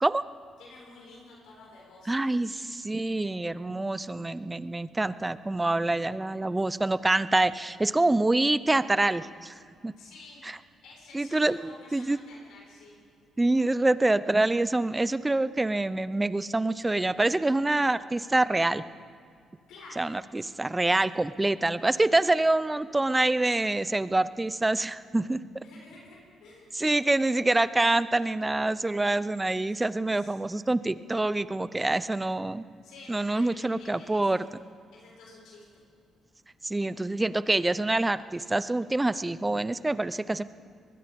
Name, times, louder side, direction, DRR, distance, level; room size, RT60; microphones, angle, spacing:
voice 1, 0.6-2.4 10.0-10.4 10.8-13.0 19.7-20.1 21.0-21.3 25.6-26.9 29.7-30.4 32.8-34.4 34.9-35.8, left 2 dB, 85° left, -3 dB, 7.0 m, -51 dB
voice 2, 2.1-9.5 9.8-9.9 10.4-10.5 11.1-12.2 13.4-18.8 20.0-25.6 26.7-32.6 33.1-34.4 36.6-40.4, right 2 dB, 15° right, 15 dB, 0.6 m, -26 dB
24.0 x 21.0 x 5.4 m, 2.2 s
cardioid pair, 90°, 0 cm